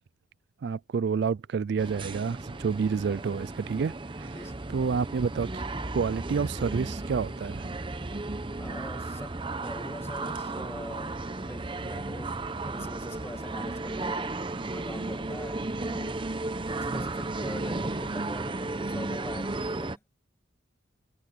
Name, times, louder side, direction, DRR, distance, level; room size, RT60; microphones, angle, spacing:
voice 1, 0.6-5.6 5.9-7.8, right 5 dB, 60° right, 0.3 m, -29 dB
sound 1, 1.8-20.0, right 2 dB, 25° right, 0.8 m, -34 dB
voice 2, 4.3-4.6 8.6-12.4 12.6-16.2 16.9-20.0, left 1 dB, 15° left, 1.7 m, -43 dB
head